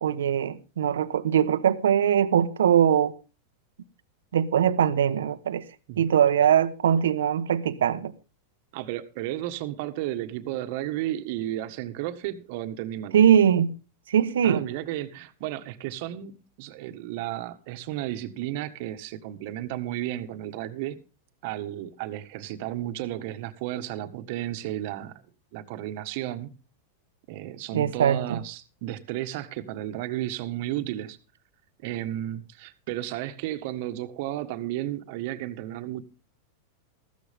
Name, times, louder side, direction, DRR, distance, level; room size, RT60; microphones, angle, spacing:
voice 1, 0.0-3.1 4.3-5.6 6.0-8.1 13.1-13.7 14.1-14.6 27.7-28.4, right 9 dB, 90° right, 1.2 m, -21 dB
voice 2, 8.7-13.1 14.4-21.0 21.4-25.1 25.5-26.5 27.3-31.2 31.8-36.0, right 13 dB, 60° right, 1.6 m, -33 dB
14.5 x 13.5 x 3.6 m
hypercardioid pair, 125°, 0 cm